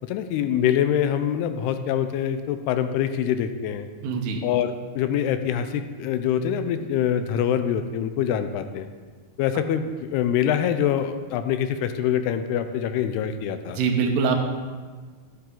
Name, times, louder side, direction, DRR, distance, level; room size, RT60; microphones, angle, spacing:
voice 1, 0.0-3.9 4.4-8.9 9.4-13.8, left 9 dB, 85° left, 9 dB, 2.6 m, -25 dB
voice 2, 4.0-4.4 13.7-14.4, right 5 dB, 85° right, 3 dB, 3.1 m, -23 dB
12.0 x 9.8 x 3.8 m, 1.4 s
omnidirectional pair, 4.7 m